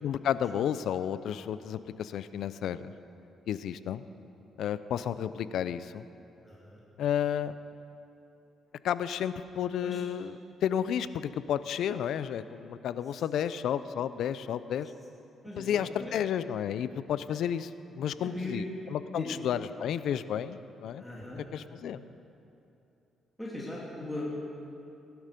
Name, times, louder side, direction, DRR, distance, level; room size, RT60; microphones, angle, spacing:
voice 1, 0.0-2.9 3.5-4.0 4.6-6.1 7.0-7.6 8.8-10.3 10.6-14.9 15.6-17.7 18.0-18.6 18.9-21.0 21.5-22.0, left 9 dB, 75° left, 14 dB, 0.5 m, -32 dB
voice 2, 6.4-6.8 9.8-10.0 15.4-16.2 18.2-18.6 19.1-19.3 21.0-21.4 23.4-24.3, left 1 dB, 5° left, -6 dB, 3.0 m, -38 dB
20.0 x 12.0 x 5.2 m, 2.8 s
cardioid pair, 90°, 0 cm